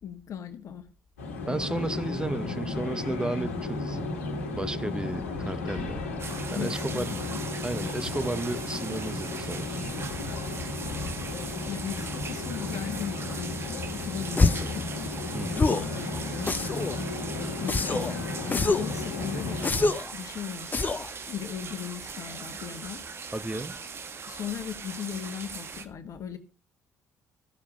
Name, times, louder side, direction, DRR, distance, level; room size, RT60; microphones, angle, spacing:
voice 1, 0.0-0.9 6.5-7.4 11.7-13.6 13.9-14.8 15.5-16.5 17.6-19.7 20.1-20.8 21.3-23.0 24.3-26.4, left 9 dB, 45° left, 1.5 m, -37 dB
sound 1, 1.2-19.9, left 3 dB, 75° left, 1.6 m, -34 dB
voice 2, 1.5-4.1 4.5-6.1 6.5-7.2 7.6-9.8 15.3-15.7 23.3-23.8, right 2 dB, 10° right, 1.0 m, -33 dB
sound 2, 6.2-25.9, right 5 dB, 35° right, 1.6 m, -40 dB
sound 3, 14.4-14.8 15.6-15.9 16.5-17.0 17.7-18.1 18.5-18.9 19.6-20.1 20.7-21.1, left 3 dB, 25° left, 0.8 m, -25 dB
14.5 x 7.1 x 5.3 m
figure-of-eight pair, 50°, 7 cm